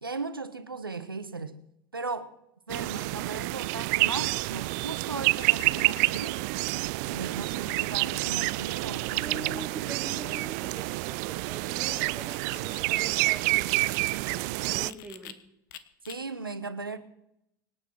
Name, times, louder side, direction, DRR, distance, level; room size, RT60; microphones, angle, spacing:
voice 1, 0.0-1.6 1.9-2.3 2.7-6.4 7.1-9.5 16.1-17.0, right 4 dB, 90° right, 1.2 m, -37 dB
sound 1, 2.7-14.9, right 23 dB, 55° right, 0.4 m, -28 dB
voice 2, 9.2-15.4, right 2 dB, 10° right, 2.6 m, -43 dB
sound 2, 9.8-15.3 15.7-16.2, left 12 dB, 60° left, 1.2 m, -50 dB
25.5 x 9.3 x 4.7 m
figure-of-eight pair, 80°, 12 cm